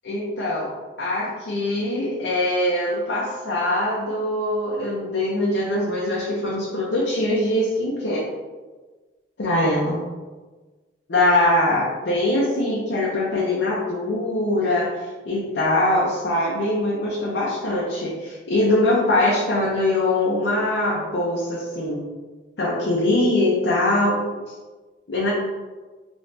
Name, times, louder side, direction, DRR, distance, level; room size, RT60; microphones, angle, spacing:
voice 1, 0.0-0.7 1.0-8.3 9.4-10.0 11.1-22.0 22.6-24.2 24.5-24.6 25.1-25.3, left 1 dB, 75° left, -5 dB, 0.6 m, -22 dB
3.3 x 3.0 x 2.6 m, 1.3 s
head